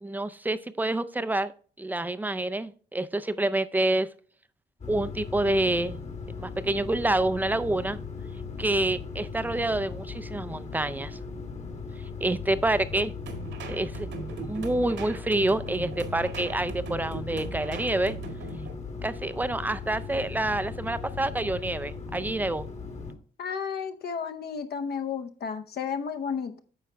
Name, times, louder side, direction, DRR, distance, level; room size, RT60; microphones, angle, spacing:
voice 1, 0.0-1.5 1.8-4.1 4.9-6.0 6.3-8.0 8.6-11.2 12.2-13.1 13.7-14.1 14.4-18.2 19.0-22.7, right 2 dB, 10° right, 14 dB, 0.4 m, -27 dB
sound 1, 4.8-23.1, left 5 dB, 35° left, 1.3 m, -38 dB
sound 2, 13.3-18.7, right 4 dB, 80° right, 1.9 m, -39 dB
voice 2, 23.4-26.6, left 6 dB, 60° left, 8 dB, 0.8 m, -32 dB
9.4 x 6.1 x 3.3 m, 0.42 s
wide cardioid pair, 165°, 19 cm